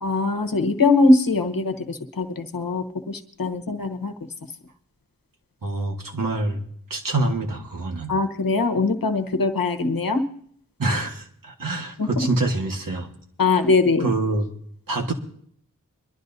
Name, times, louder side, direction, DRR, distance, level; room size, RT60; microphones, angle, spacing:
voice 1, 0.0-4.1 8.1-10.2 12.0-12.3 13.4-14.1, left 3 dB, 85° left, 7 dB, 1.1 m, -21 dB
voice 2, 5.6-6.6 6.9-8.1 10.8-13.1 14.0-14.5 14.9-15.1, right 2 dB, 75° right, 2 dB, 1.6 m, -26 dB
24.0 x 12.0 x 2.7 m, 0.64 s
wide cardioid pair, 50°, 34 cm